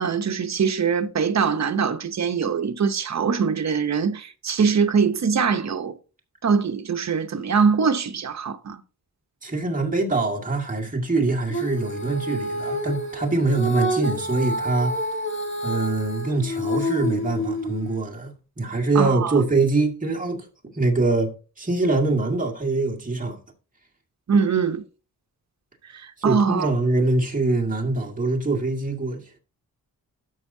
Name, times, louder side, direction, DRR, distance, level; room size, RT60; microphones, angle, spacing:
voice 1, 0.0-5.9 6.4-8.8 18.9-19.4 24.3-24.8 25.9-26.7, right 6 dB, 50° right, 0.8 m, -23 dB
voice 2, 9.4-15.1 15.6-18.3 18.6-20.5 20.7-23.4 26.2-29.4, right 3 dB, 20° right, 1.8 m, -24 dB
Female singing, 11.5-18.0, equal, 35° left, 1.5 m, -28 dB
13.0 x 5.4 x 2.7 m
wide cardioid pair, 130°, 35 cm